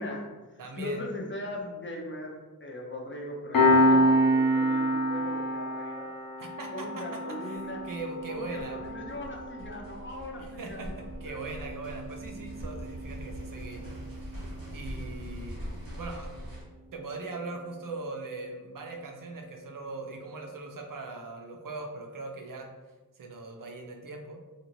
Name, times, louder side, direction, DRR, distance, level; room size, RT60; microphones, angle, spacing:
voice 1, 0.0-6.1 6.7-7.9 8.2-11.5, left 1 dB, 35° left, 0 dB, 0.5 m, -39 dB
voice 2, 0.6-1.0 6.4-6.9 7.4-8.8 10.4-14.5 14.7-15.6 16.0-16.3 16.9-22.7 23.2-24.4, right 3 dB, 65° right, 2 dB, 0.5 m, -40 dB
Piano, 3.5-14.6, equal, 80° left, 0.7 m, -28 dB
sound 1, 7.5-16.6, equal, 85° right, 1.3 m, -42 dB
2.7 x 2.5 x 2.9 m, 1.2 s
wide cardioid pair, 80°, 35 cm